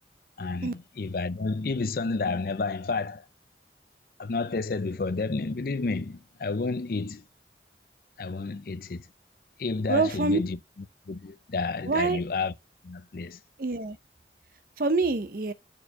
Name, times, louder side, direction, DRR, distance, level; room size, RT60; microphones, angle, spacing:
voice 1, 0.4-3.2 4.2-7.2 8.2-9.0 9.6-10.6 11.1-12.5 12.8-13.4, left 3 dB, 55° left, 0.5 m, -30 dB
voice 2, 9.9-10.4 11.9-12.2 13.6-14.0 14.8-15.5, right 3 dB, 50° right, 0.7 m, -25 dB
6.8 x 4.5 x 5.7 m
head